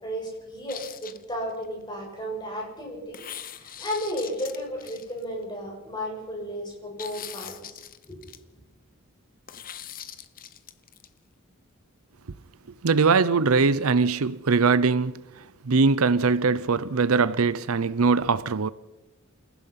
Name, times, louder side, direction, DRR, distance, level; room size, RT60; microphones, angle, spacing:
voice 1, 0.0-7.8 8.1-8.3, equal, 20° left, 7.3 m, -34 dB
sound 1, 0.7-1.7 3.1-5.4 7.0-8.4 9.5-11.1, left 10 dB, 40° left, 1.1 m, -41 dB
voice 2, 12.8-15.1 15.6-18.7, right 4 dB, 75° right, 0.7 m, -21 dB
29.0 x 15.5 x 5.8 m
head